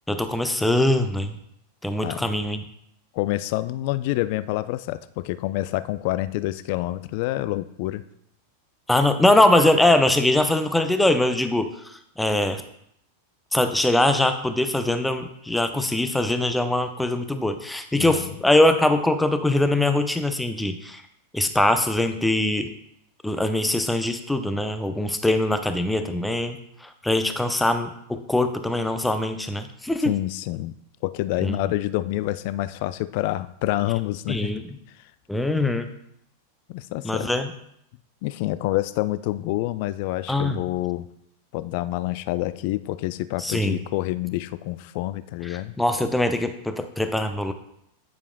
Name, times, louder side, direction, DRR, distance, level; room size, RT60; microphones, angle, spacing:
voice 1, 0.1-1.4 1.8-2.7 8.9-12.6 13.5-21.0 21.3-22.7 23.2-26.6 27.0-30.1 31.4-31.6 34.3-34.6 35.3-35.9 37.0-37.5 40.3-40.6 43.4-43.8 45.4-47.5, left 1 dB, 5° left, 8 dB, 0.6 m, -22 dB
voice 2, 3.1-8.0 18.0-18.3 30.0-30.7 31.0-34.5 36.7-37.3 38.2-41.1 41.5-45.7, left 16 dB, 45° left, 15 dB, 0.3 m, -27 dB
8.8 x 7.0 x 2.2 m, 0.74 s
figure-of-eight pair, 90°, 0 cm